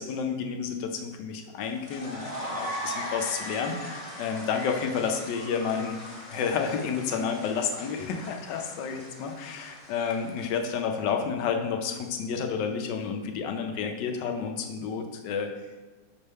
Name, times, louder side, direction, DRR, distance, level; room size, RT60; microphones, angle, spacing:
voice 1, 0.0-6.0 6.3-15.5, left 6 dB, 75° left, 4 dB, 1.3 m, -30 dB
sound 1, 1.6-10.9, equal, 35° left, 1.9 m, -40 dB
5.2 x 3.4 x 5.4 m, 1.3 s
omnidirectional pair, 2.0 m